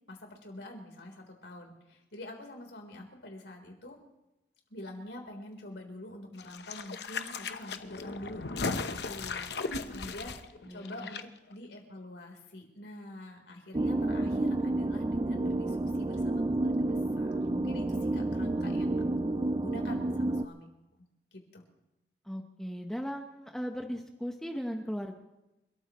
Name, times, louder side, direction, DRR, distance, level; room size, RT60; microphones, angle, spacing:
voice 1, 0.1-4.0 4.7-8.4 8.8-20.7 20.9-21.0 21.3-21.6, left 1 dB, 85° left, 2 dB, 3.8 m, -46 dB
sound 1, 6.4-11.2 11.5-11.6, left 4 dB, 65° left, 0.9 m, -37 dB
voice 2, 9.7-10.3 10.6-11.1 22.2-25.2, equal, 5° left, 3 dB, 1.0 m, -38 dB
sound 2, 13.7-20.5, right 2 dB, 25° right, 0.4 m, -30 dB
30.0 x 14.0 x 3.1 m, 0.94 s
head